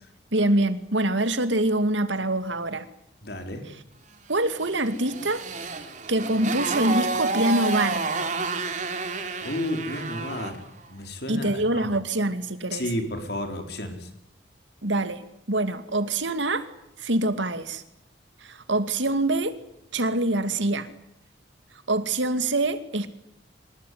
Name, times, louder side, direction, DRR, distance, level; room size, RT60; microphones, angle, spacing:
voice 1, 0.3-2.9 4.3-5.5 6.1-8.0 11.3-12.8 14.8-16.7 17.0-17.8 18.4-19.6 19.9-20.9 21.9-23.1, right 2 dB, 80° right, 11 dB, 2.4 m, -25 dB
voice 2, 3.2-3.6 9.4-10.6 10.9-11.9 12.7-14.1, left 1 dB, 60° left, 6 dB, 4.6 m, -32 dB
Motorcycle, 4.6-10.6, right 3 dB, 40° right, 3.3 m, -30 dB
25.5 x 21.0 x 9.6 m, 0.76 s
head